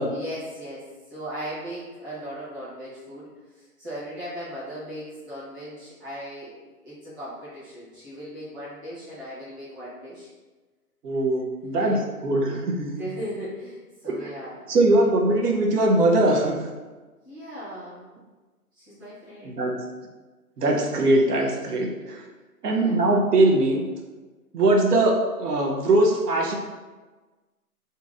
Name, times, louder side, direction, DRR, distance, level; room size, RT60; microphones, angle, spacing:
voice 1, 0.1-10.3 11.7-12.1 13.0-15.4 17.2-18.2 18.7-19.7 22.6-23.0, equal, 15° right, -13 dB, 0.8 m, -38 dB
voice 2, 11.0-12.0 12.2-13.0 14.0-14.3 14.7-16.6 19.5-19.7 20.6-22.2 22.6-23.8 24.5-26.6, right 2 dB, 80° right, 0 dB, 0.8 m, -21 dB
2.8 x 2.7 x 3.6 m, 1.3 s
hypercardioid pair, 165°, 46 cm